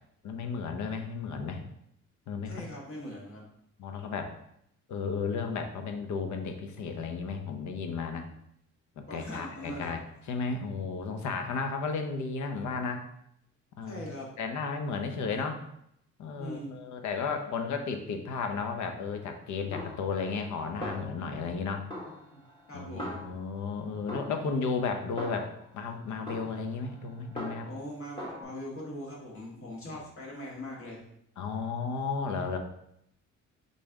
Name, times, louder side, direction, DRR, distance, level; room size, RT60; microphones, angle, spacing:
voice 1, 0.2-1.6 2.3-2.6 3.8-4.3 4.9-8.3 9.0-13.0 13.8-14.0 14.4-15.6 16.2-21.9 22.7-27.7 31.4-32.6, left 5 dB, 70° left, 6 dB, 0.7 m, -34 dB
voice 2, 2.5-3.4 8.2-8.3 9.1-10.0 13.9-14.3 16.4-16.8 22.3-23.2 27.7-31.0, left 1 dB, 45° left, -3 dB, 1.7 m, -41 dB
Snare drum, 19.7-20.5 20.8-21.6 21.9-23.7 24.1-25.8 26.3-27.9 28.2-28.4, left 1 dB, 15° left, 1.5 m, -41 dB
4.1 x 3.3 x 3.5 m, 0.75 s
cardioid pair, 90°, 30 cm